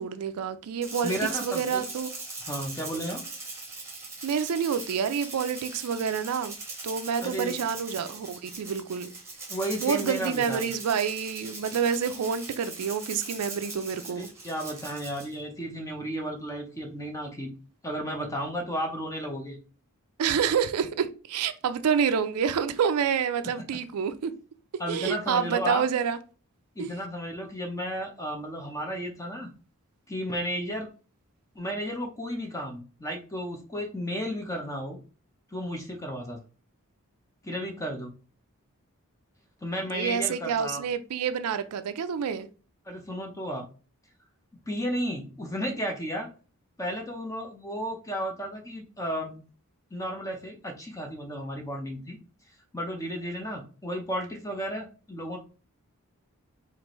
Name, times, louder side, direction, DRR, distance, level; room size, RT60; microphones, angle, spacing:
voice 1, 0.0-2.1 4.2-6.5 6.8-9.1 9.8-14.3 20.2-24.3 24.9-26.2 26.8-26.9 39.9-42.5, right 7 dB, 80° right, 0.4 m, -28 dB
Rattle (instrument), 0.8-15.3, right 3 dB, 15° right, 1.0 m, -40 dB
voice 2, 1.0-1.8 2.5-3.2 7.2-7.6 9.5-10.6 14.1-17.5 17.8-19.6 24.8-25.8 26.8-29.5 30.1-30.9 31.5-35.0 35.5-36.4 37.4-38.1 39.6-40.8 42.9-43.6 44.7-46.3 46.8-49.4 49.9-52.2 52.7-55.4, equal, 15° left, 0.7 m, -33 dB
4.5 x 2.5 x 3.0 m
head